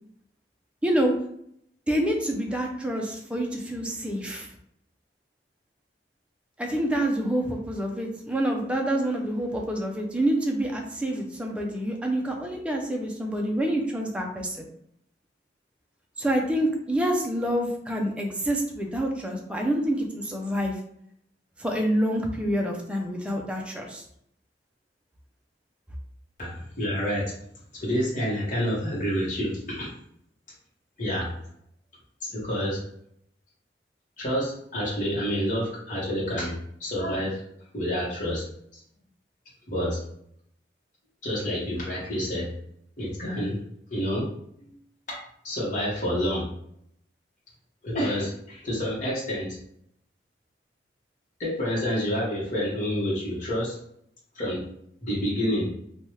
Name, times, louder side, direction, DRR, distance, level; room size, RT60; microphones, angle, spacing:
voice 1, 0.8-1.1 1.9-4.5 6.6-14.6 16.2-20.8 21.6-24.0, right 1 dB, 5° right, 1 dB, 0.4 m, -27 dB
voice 2, 26.4-27.3 27.7-29.9 31.0-31.3 32.2-32.8 34.2-36.5 36.8-37.4 37.7-38.4 39.7-40.0 41.2-42.5 43.0-43.6 43.9-44.2 45.1-46.4 47.8-49.6 51.4-53.8 54.3-54.6 55.0-55.7, equal, 45° left, -6 dB, 1.0 m, -28 dB
3.2 x 2.2 x 2.8 m, 0.70 s
head